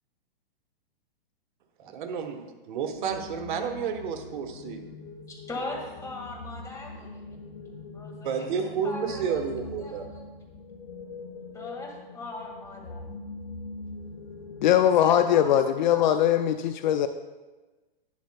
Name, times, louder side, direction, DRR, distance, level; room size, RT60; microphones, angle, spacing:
voice 1, 1.8-4.8 8.2-10.1, right 7 dB, 55° right, 5 dB, 1.1 m, -31 dB
sound 1, 2.9-15.6, left 3 dB, 70° left, 1.2 m, -43 dB
voice 2, 5.3-7.4 7.9-9.4 9.8-10.2 11.5-13.0 14.8-16.1, left 2 dB, 10° left, -1 dB, 1.8 m, -40 dB
voice 3, 14.6-17.1, left 10 dB, 50° left, 10 dB, 0.4 m, -21 dB
11.5 x 9.5 x 2.2 m, 1.2 s
hypercardioid pair, 135°, 30 cm